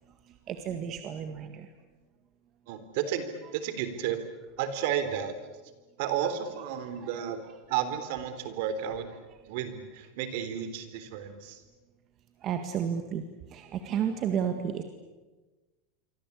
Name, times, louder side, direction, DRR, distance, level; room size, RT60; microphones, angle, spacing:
voice 1, 0.3-1.7 2.7-2.8 3.4-3.5 7.0-7.3 9.3-9.4 12.4-14.8, right 8 dB, 30° right, 6 dB, 1.8 m, -33 dB
voice 2, 2.7-3.2 3.5-4.2 4.6-5.4 6.0-9.2 9.4-11.6, right 9 dB, 60° right, 10 dB, 3.7 m, -32 dB
28.0 x 24.5 x 8.5 m, 1.2 s
supercardioid pair, 160°, 0 cm